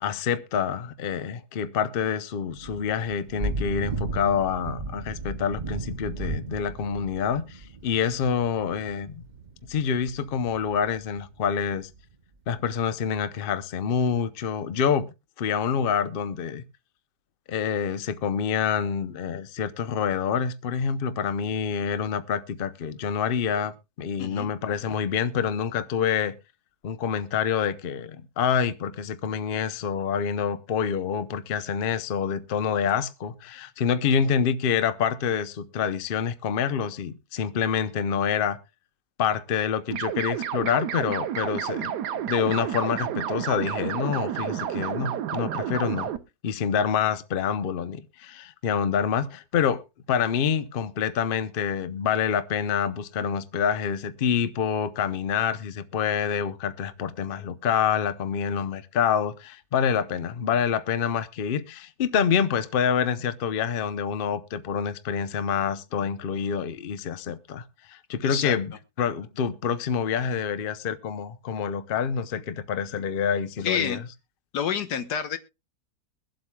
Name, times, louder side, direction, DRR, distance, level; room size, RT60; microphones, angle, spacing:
voice 1, 0.0-9.3 9.7-11.9 12.5-15.1 15.4-16.6 17.5-26.3 26.8-38.6 39.2-41.9 42.3-46.1 46.4-49.8 50.1-68.7 69.0-74.0, left 7 dB, 45° left, 0.7 m, -27 dB
Thunder / Rain, 2.4-12.0, right 3 dB, 55° right, 0.5 m, -35 dB
voice 2, 24.2-24.5 68.2-68.6 73.6-74.0 74.5-75.4, left 8 dB, 85° left, 1.6 m, -28 dB
sound 1, 39.9-46.2, right 9 dB, 85° right, 1.4 m, -30 dB
22.5 x 7.8 x 2.3 m
omnidirectional pair, 1.7 m